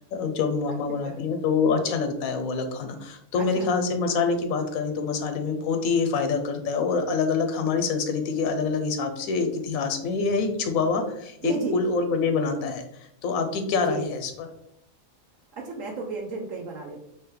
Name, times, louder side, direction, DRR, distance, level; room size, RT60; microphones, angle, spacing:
voice 1, 0.0-12.8 13.2-14.0, left 4 dB, 90° left, 6 dB, 1.1 m, -26 dB
voice 2, 0.7-1.2 3.4-3.7 11.4-11.8 13.8-14.1 15.5-17.0, right 3 dB, 75° right, 0 dB, 1.0 m, -33 dB
3.8 x 2.8 x 3.0 m, 0.76 s
omnidirectional pair, 1.4 m